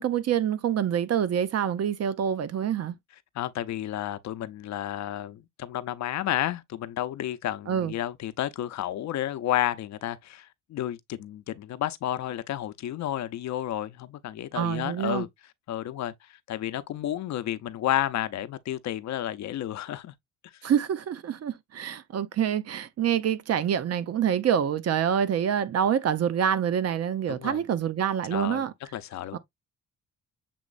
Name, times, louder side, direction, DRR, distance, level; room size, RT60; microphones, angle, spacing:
voice 1, 0.0-2.9 7.7-7.9 14.5-15.3 20.6-28.7 29.3-29.4, right 9 dB, 55° right, 0.8 m, -26 dB
voice 2, 3.3-15.3 15.7-20.1 20.6-20.7 27.3-27.6 28.3-28.6 28.9-29.4, left 12 dB, 65° left, 0.6 m, -31 dB
7.0 x 3.0 x 2.5 m
cardioid pair, 90°, 30 cm